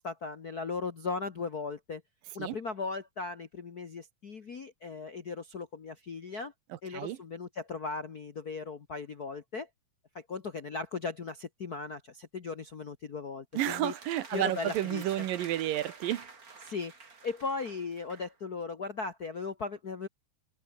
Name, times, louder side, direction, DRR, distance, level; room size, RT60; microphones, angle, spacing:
voice 1, 0.0-2.0 2.3-6.5 6.8-9.7 10.1-13.9 14.3-15.2 16.6-16.9 17.2-20.1, left 4 dB, 85° left, 0.8 m, -37 dB
sound 1, 13.5-18.4, right 4 dB, 25° right, 2.6 m, -49 dB
voice 2, 13.5-16.3, right 13 dB, 75° right, 2.7 m, -31 dB
omnidirectional pair, 4.2 m